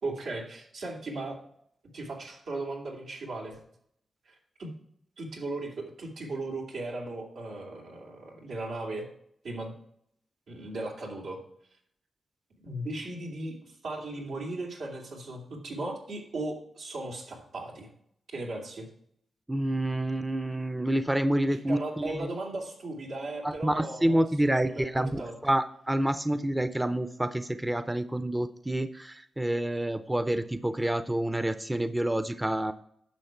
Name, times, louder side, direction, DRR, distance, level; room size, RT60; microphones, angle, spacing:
voice 1, 0.0-1.4 1.9-3.6 4.2-4.7 5.2-9.1 9.4-9.7 10.5-11.4 12.6-17.9 18.3-18.9 21.7-25.4, right 2 dB, 90° right, -2 dB, 2.8 m, -37 dB
voice 2, 19.5-22.3 23.4-32.7, right 1 dB, 15° right, 11 dB, 0.6 m, -28 dB
10.5 x 6.4 x 4.5 m, 0.68 s
cardioid pair, 65°, 0 cm